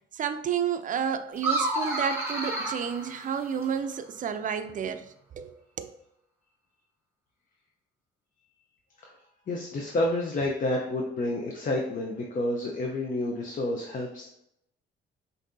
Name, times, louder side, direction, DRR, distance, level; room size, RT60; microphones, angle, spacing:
voice 1, 0.1-5.5 5.8-5.9, right 7 dB, 40° right, 0.4 m, -31 dB
sound 1, 1.4-3.9, right 2 dB, 15° right, 1.4 m, -30 dB
voice 2, 9.5-14.3, left 1 dB, 45° left, 0.7 m, -29 dB
5.8 x 2.7 x 2.6 m
cardioid pair, 90°, 20 cm